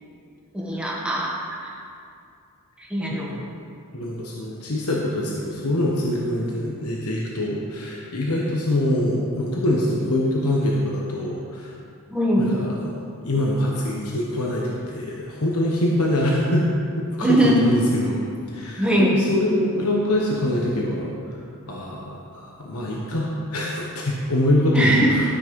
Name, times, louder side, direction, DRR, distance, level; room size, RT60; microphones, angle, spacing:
voice 1, 0.5-1.3 1.6-1.7 2.8-3.3 12.1-12.5 17.2-17.6 18.8-19.1 24.7-25.2, right 1 dB, 5° right, -5 dB, 1.8 m, -21 dB
voice 2, 3.9-11.7 12.4-16.7 17.0-18.2 18.5-21.4 21.7-25.2, left 1 dB, 75° left, -2 dB, 1.2 m, -24 dB
13.0 x 6.2 x 5.3 m, 2.4 s
head